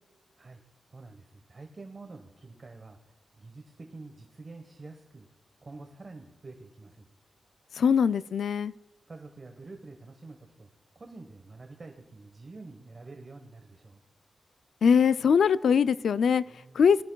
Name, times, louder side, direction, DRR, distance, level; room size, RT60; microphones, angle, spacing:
voice 1, 0.9-5.3 5.6-7.1 9.1-10.7 10.9-14.0 16.5-16.9, right 3 dB, 35° right, 4 dB, 1.2 m, -47 dB
voice 2, 7.8-8.7 14.8-16.4 16.7-17.0, left 6 dB, 75° left, 15 dB, 0.3 m, -22 dB
22.0 x 13.0 x 2.3 m, 1.2 s
wide cardioid pair, 140°, 0 cm